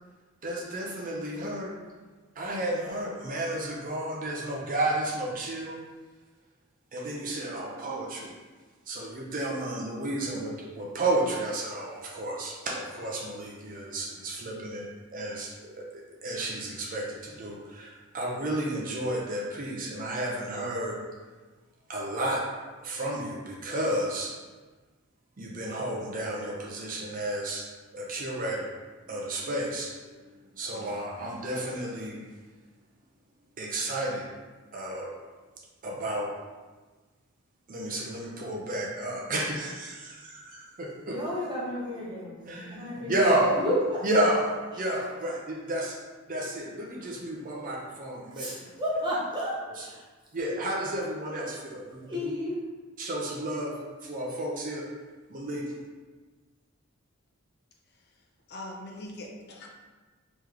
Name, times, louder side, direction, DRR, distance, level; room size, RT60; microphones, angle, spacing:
voice 1, 0.4-1.7 2.4-5.8 6.9-8.3 8.9-14.9 15.1-21.0 21.9-22.4 22.8-24.3 25.4-27.7 27.9-28.7 29.1-30.2 30.5-32.2 33.6-34.3 34.7-35.1 35.8-36.3 37.7-41.2 42.4-43.6 44.0-46.0 46.3-48.5 49.8-49.9 50.3-52.3 53.0-54.9 55.3-55.7, right 1 dB, 40° right, -2 dB, 0.6 m, -31 dB
voice 2, 41.1-44.0 48.2-50.0 50.6-50.7 52.0-52.6, equal, 20° right, -6 dB, 1.0 m, -32 dB
voice 3, 57.9-59.7, left 1 dB, 50° left, 0 dB, 0.6 m, -43 dB
3.2 x 3.1 x 3.7 m, 1.3 s
head